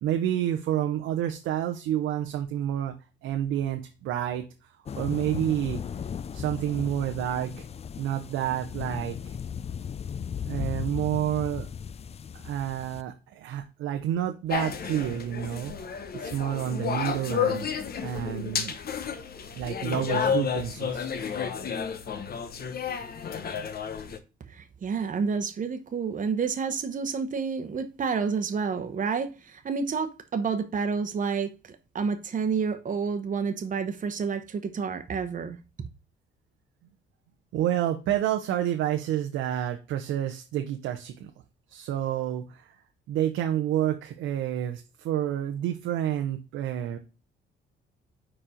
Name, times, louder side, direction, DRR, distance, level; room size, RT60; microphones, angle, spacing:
voice 1, 0.0-2.9 3.2-5.8 6.3-7.6 8.0-9.3 10.5-11.7 12.3-15.7 16.1-17.7 18.0-18.7 19.6-21.1 37.5-41.3 41.7-42.8 43.1-47.0, right 11 dB, 90° right, 0.8 m, -29 dB
sound 1, 4.9-13.0, left 7 dB, 30° left, 0.4 m, -36 dB
sound 2, 14.5-24.2, left 7 dB, 50° left, 0.9 m, -31 dB
voice 2, 24.5-35.9, right 5 dB, 40° right, 0.9 m, -29 dB
4.8 x 4.4 x 5.0 m
cardioid pair, 90°, 20 cm